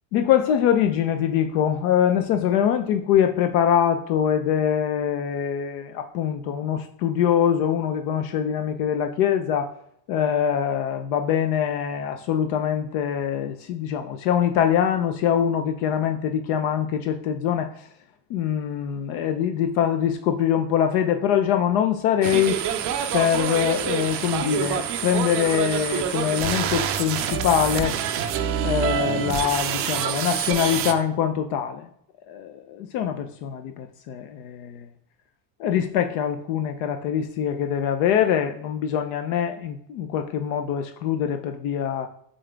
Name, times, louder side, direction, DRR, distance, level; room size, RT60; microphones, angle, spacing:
voice 1, 0.1-9.7 10.1-17.9 18.3-22.6 23.1-28.0 28.6-31.9 32.3-34.9 35.6-42.1, left 9 dB, 65° left, 7 dB, 0.7 m, -23 dB
sound 1, 22.2-30.9, right 9 dB, 30° right, 0.4 m, -26 dB
7.5 x 3.8 x 3.4 m, 0.70 s
cardioid pair, 165°, 50 cm